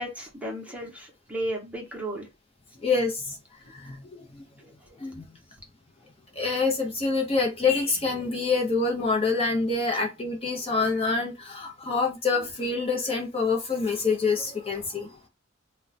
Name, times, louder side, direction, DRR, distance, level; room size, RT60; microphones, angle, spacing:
voice 1, 0.0-2.3, right 1 dB, 5° right, 0.9 m, -34 dB
voice 2, 2.8-3.4 3.7-4.4 5.0-5.2 6.3-15.1, left 4 dB, 30° left, 0.7 m, -26 dB
2.4 x 2.2 x 4.0 m
head